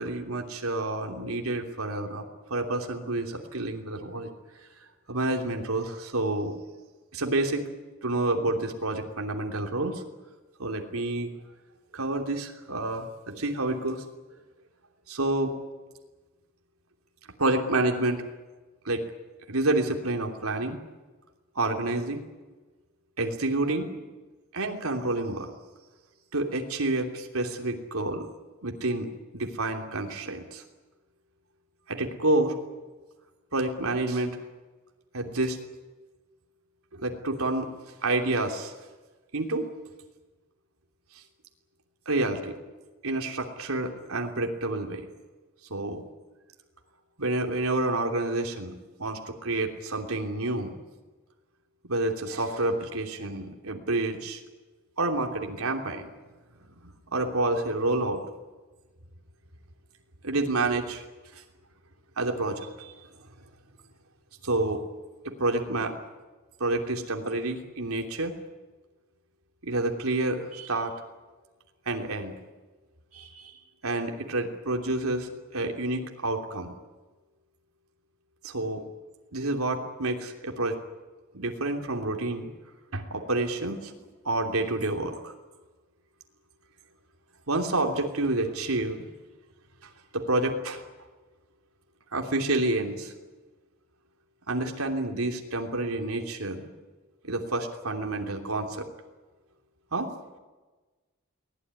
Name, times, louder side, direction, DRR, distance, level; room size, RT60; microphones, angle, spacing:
voice 1, 0.0-4.3 4.8-6.8 7.1-7.6 8.0-10.0 10.6-11.3 11.9-14.0 15.1-15.5 17.4-18.2 18.8-19.0 19.5-20.8 21.5-22.2 23.2-23.9 24.5-25.5 26.3-28.3 28.6-29.1 29.3-30.6 31.9-32.5 33.5-34.4 35.1-35.6 36.9-37.7 38.0-38.7 39.3-39.7 41.1-41.2 42.0-42.6 43.0-45.0 45.7-46.0 47.2-48.7 49.0-50.8 51.9-54.4 55.0-56.1 56.8-58.2 60.2-61.0 61.3-61.4 62.2-62.9 64.4-64.8 65.2-65.9 66.6-68.3 69.6-70.9 71.8-72.4 73.1-76.7 78.4-78.8 79.3-80.8 81.3-82.5 82.9-83.9 84.2-85.3 87.5-89.1 89.8-90.8 92.1-93.1 94.5-96.7 97.2-98.9 99.9-100.1, right 2 dB, 85° right, 2 dB, 3.1 m, -29 dB
24.0 x 18.5 x 9.9 m, 1.2 s
head